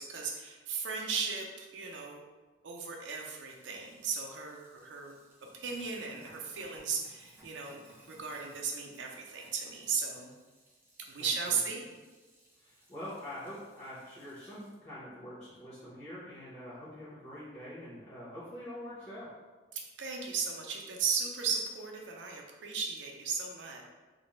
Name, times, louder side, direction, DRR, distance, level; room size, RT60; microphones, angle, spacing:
voice 1, 0.0-2.2 2.6-5.2 5.5-10.3 11.1-11.9 19.7-23.9, right 5 dB, 70° right, 1 dB, 0.4 m, -36 dB
Sink (filling or washing), 2.8-14.7, right 1 dB, 10° right, 0.4 m, -62 dB
voice 2, 11.2-11.9 12.6-19.3, left 1 dB, 35° left, -12 dB, 0.8 m, -45 dB
2.5 x 2.0 x 2.9 m, 1.3 s
head